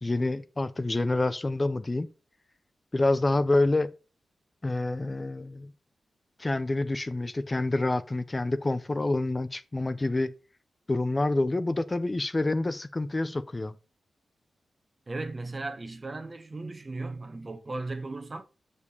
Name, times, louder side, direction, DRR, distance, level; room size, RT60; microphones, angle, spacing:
voice 1, 0.0-2.1 2.9-3.9 4.6-5.7 6.4-10.3 10.9-13.7, left 2 dB, 30° left, 0.6 m, -27 dB
voice 2, 15.1-18.5, right 2 dB, 35° right, 1.2 m, -36 dB
6.5 x 4.9 x 5.4 m
cardioid pair, 55°, 0 cm